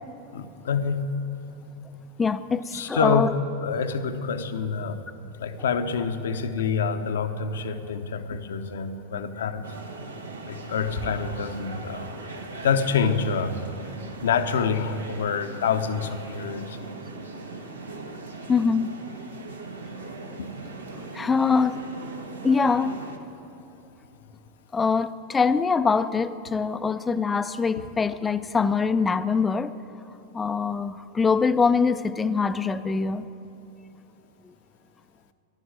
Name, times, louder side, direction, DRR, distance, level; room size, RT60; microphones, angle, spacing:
voice 1, 0.3-1.0 2.7-5.0 5.4-9.8 10.5-13.6 14.2-16.8 20.4-20.5, left 6 dB, 65° left, 9 dB, 0.8 m, -27 dB
voice 2, 2.2-3.3 18.5-18.9 20.9-21.8 22.4-22.9 24.7-29.7 30.3-33.3 34.4-34.5, left 5 dB, 15° left, 13 dB, 0.5 m, -23 dB
sound 1, 9.6-23.2, right 3 dB, 75° right, 1.3 m, -39 dB
13.0 x 11.5 x 9.1 m, 3.0 s
figure-of-eight pair, 90°, 0 cm